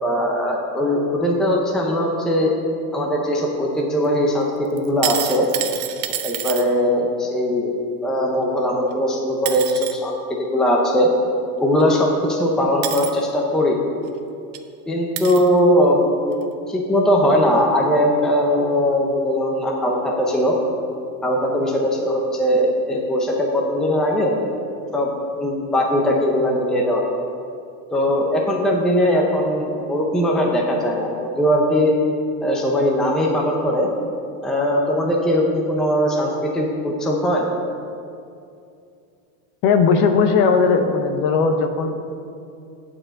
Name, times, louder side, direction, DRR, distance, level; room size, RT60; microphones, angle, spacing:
voice 1, 0.0-2.5 2.9-4.5 4.7-5.5 6.2-7.8 8.0-10.1 10.4-11.1 11.6-13.8 14.9-20.6 21.2-24.3 24.9-25.1 25.4-27.0 27.9-32.0 32.4-33.9 34.4-37.5, equal, ahead, -1 dB, 0.6 m, -20 dB
sound 1, 4.8-6.6 8.9-9.0 9.5-9.9 11.8-11.9 12.8-13.1 14.1-14.2 14.5-14.6 15.2-15.5 16.3-16.4, right 12 dB, 80° right, 0.9 m, -27 dB
voice 2, 39.6-42.1, left 5 dB, 45° left, 7 dB, 0.8 m, -18 dB
8.7 x 4.9 x 7.6 m, 2.5 s
supercardioid pair, 155°, 41 cm